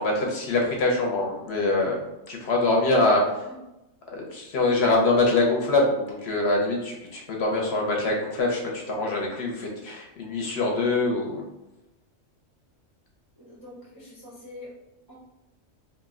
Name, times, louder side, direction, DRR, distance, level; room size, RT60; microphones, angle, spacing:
voice 1, 0.0-2.0 2.3-3.3 4.1-11.4, left 2 dB, 65° left, -1 dB, 0.8 m, -24 dB
voice 2, 3.1-3.6 13.4-14.7 15.1-15.2, left 1 dB, 35° right, -6 dB, 0.4 m, -45 dB
2.6 x 2.1 x 3.5 m, 0.94 s
omnidirectional pair, 1.3 m